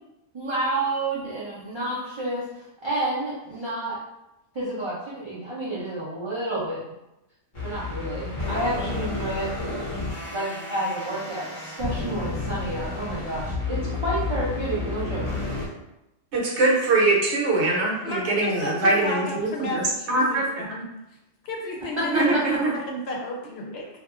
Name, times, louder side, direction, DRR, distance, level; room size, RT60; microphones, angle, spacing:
voice 1, 0.3-4.0 4.5-6.8 7.6-9.5 10.3-15.4 22.0-22.1 22.3-22.4, right 1 dB, 50° right, -8 dB, 0.3 m, -30 dB
sound 1, 7.5-15.7, left 3 dB, 35° left, 0.5 m, -31 dB
voice 2, 16.3-19.8 20.1-20.6 22.1-22.7, right 2 dB, 70° right, -3 dB, 0.9 m, -22 dB
voice 3, 18.0-20.9 21.4-22.5 22.9-23.9, left 2 dB, 65° left, -1 dB, 0.7 m, -33 dB
2.7 x 2.3 x 2.4 m, 0.92 s
omnidirectional pair, 1.2 m